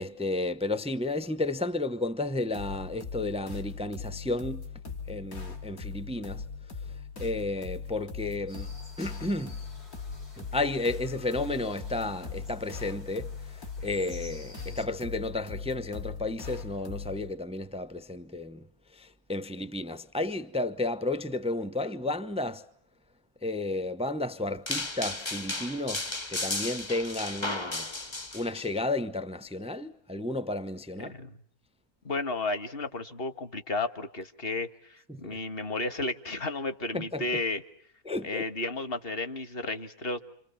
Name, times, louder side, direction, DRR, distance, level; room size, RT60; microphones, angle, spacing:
voice 1, 0.0-4.7 5.1-6.4 7.2-9.6 10.4-18.7 18.9-22.6 23.4-27.9 28.3-31.1 35.1-35.4 36.9-37.2 38.0-38.4, left 2 dB, 5° right, 0.8 m, -32 dB
sound 1, 2.5-17.3, left 5 dB, 65° left, 3.8 m, -40 dB
sound 2, 8.5-14.9, left 1 dB, 85° left, 6.7 m, -52 dB
sound 3, 24.7-28.7, left 2 dB, 20° left, 1.1 m, -34 dB
voice 2, 31.0-31.4 32.0-37.6 38.2-40.2, left 2 dB, 40° left, 1.9 m, -33 dB
29.0 x 27.5 x 7.2 m
omnidirectional pair, 1.6 m